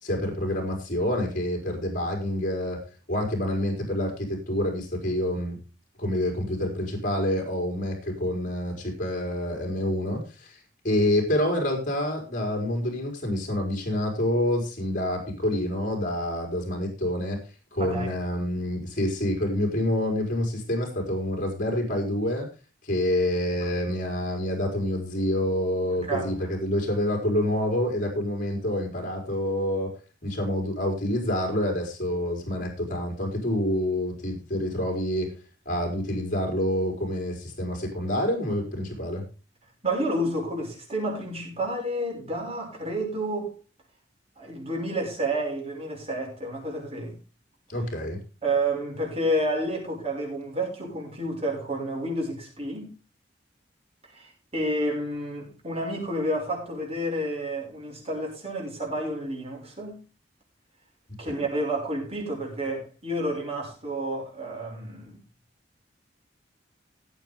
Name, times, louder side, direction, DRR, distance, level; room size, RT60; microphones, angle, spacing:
voice 1, 0.0-2.8 3.1-5.6 6.0-17.4 17.7-22.5 22.8-29.9 30.2-35.3 35.6-39.2 47.7-48.2, left 1 dB, 50° left, 4.7 m, -27 dB
voice 2, 17.8-18.1 23.6-23.7 26.1-26.5 39.8-43.6 44.4-47.2 48.4-52.9 54.0-60.0 61.2-65.2, right 1 dB, 35° right, 6.2 m, -30 dB
18.0 x 8.1 x 3.7 m
head